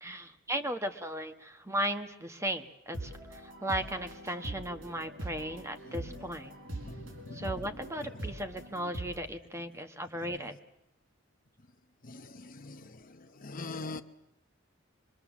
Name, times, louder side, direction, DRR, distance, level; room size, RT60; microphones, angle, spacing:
voice 1, 0.0-6.5 7.3-10.5, right 1 dB, 15° right, 7 dB, 1.3 m, -36 dB
sound 1, 2.9-9.2, right 1 dB, 75° right, 4.7 m, -42 dB
voice 2, 5.8-6.2 6.8-7.5 12.0-14.0, left 2 dB, 45° left, 8 dB, 1.0 m, -43 dB
25.0 x 23.5 x 7.3 m, 0.87 s
head